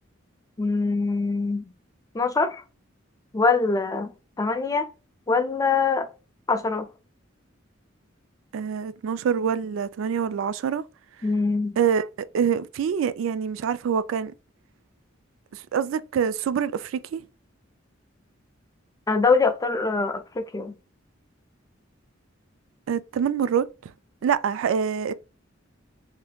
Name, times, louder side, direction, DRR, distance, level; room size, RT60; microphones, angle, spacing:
voice 1, 0.6-1.7 2.1-2.6 3.3-4.1 4.4-4.9 5.3-6.1 6.5-6.9 11.2-11.8 19.1-20.7, left 4 dB, 20° left, 0.4 m, -23 dB
voice 2, 8.5-10.8 11.8-12.1 12.3-14.3 15.5-17.2 22.9-23.9 24.2-25.1, right 7 dB, 75° right, 0.3 m, -25 dB
3.4 x 2.8 x 2.3 m
head